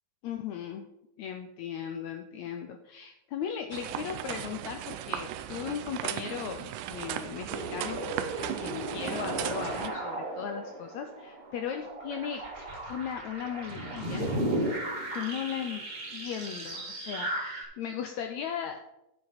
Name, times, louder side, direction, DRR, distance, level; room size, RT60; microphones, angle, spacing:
voice 1, 0.2-0.9 1.2-8.0 8.4-12.4 12.9-14.3 15.1-15.8 16.1-18.8, left 8 dB, 90° left, 5 dB, 1.6 m, -37 dB
sound 1, 3.7-9.9, right 11 dB, 80° right, 2.0 m, -37 dB
sound 2, 7.5-17.6, right 1 dB, 30° right, 1.1 m, -35 dB
10.5 x 6.9 x 4.1 m, 0.88 s
omnidirectional pair, 4.0 m